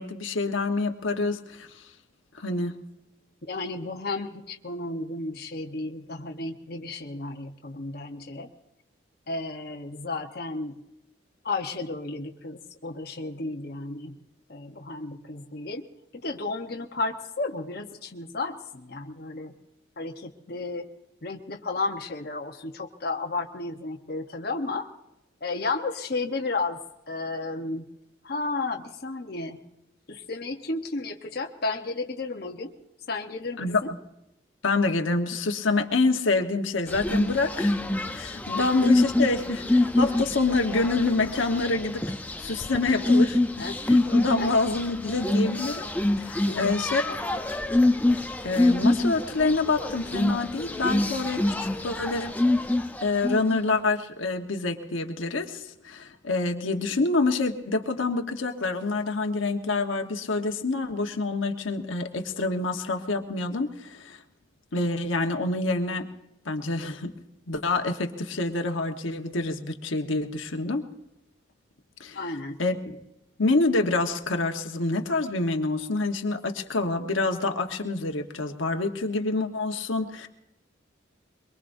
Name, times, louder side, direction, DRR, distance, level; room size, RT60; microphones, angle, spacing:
voice 1, 0.0-1.8 2.3-2.7 33.6-33.8 34.6-37.8 38.1-42.0 42.4-43.4 43.9-45.9 46.2-47.0 48.4-52.4 53.0-64.2 64.7-66.1 66.4-67.1 67.5-70.8 72.0-72.2 72.6-72.8 73.4-80.3, left 3 dB, 85° left, 5 dB, 1.2 m, -27 dB
voice 2, 3.5-8.5 9.3-10.8 11.4-14.2 14.5-15.9 16.1-19.5 20.0-20.9 21.2-24.9 25.4-26.8 27.1-27.9 28.2-29.6 30.1-32.7 33.1-33.9 38.5-38.6 42.9-43.0 43.6-43.8 44.4-44.5 46.5-46.6 72.1-72.6, left 3 dB, 50° left, 2 dB, 1.0 m, -33 dB
sound 1, 36.9-53.6, left 2 dB, 10° left, 0.6 m, -25 dB
23.0 x 23.0 x 2.6 m, 0.89 s
head